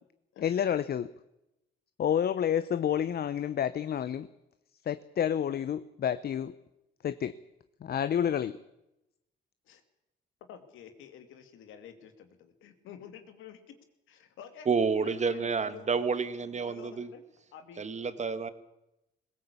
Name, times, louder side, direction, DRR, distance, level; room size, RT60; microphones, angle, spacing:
voice 1, 0.4-1.1 2.0-4.3 4.9-6.5 7.0-7.4 7.8-8.6, left 9 dB, 55° left, 14 dB, 0.8 m, -29 dB
voice 2, 10.5-13.8 14.1-14.7 15.0-17.2 17.5-17.8, left 8 dB, 90° left, 8 dB, 2.5 m, -50 dB
voice 3, 14.7-17.1 17.8-18.5, right 5 dB, 35° right, 13 dB, 1.5 m, -29 dB
20.5 x 17.0 x 8.4 m, 0.91 s
cardioid pair, 90°, 20 cm